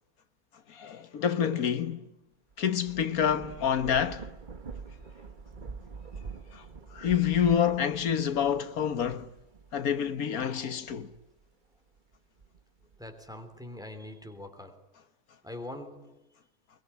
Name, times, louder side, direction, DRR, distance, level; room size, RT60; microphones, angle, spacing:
voice 1, 0.7-2.1 2.6-4.3 6.5-6.6 6.9-9.3 9.7-11.1, left 8 dB, 80° left, 1.6 m, -27 dB
Thunder / Rain, 2.5-11.4 12.0-13.3, right 5 dB, 35° right, 1.2 m, -46 dB
voice 2, 13.0-14.9 15.4-16.3, left 1 dB, ahead, 3.0 m, -43 dB
23.5 x 22.5 x 9.7 m
omnidirectional pair, 1.5 m